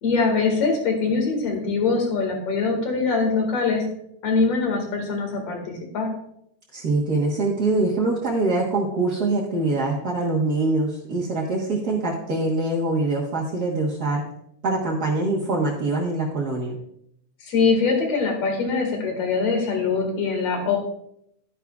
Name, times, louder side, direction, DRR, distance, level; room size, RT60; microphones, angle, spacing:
voice 1, 0.0-3.9 4.2-6.1 17.4-20.8, left 4 dB, 55° left, 2 dB, 3.0 m, -23 dB
voice 2, 6.7-14.2 14.6-16.8, right 2 dB, 50° right, -4 dB, 1.2 m, -24 dB
11.5 x 10.0 x 2.4 m, 0.74 s
omnidirectional pair, 3.5 m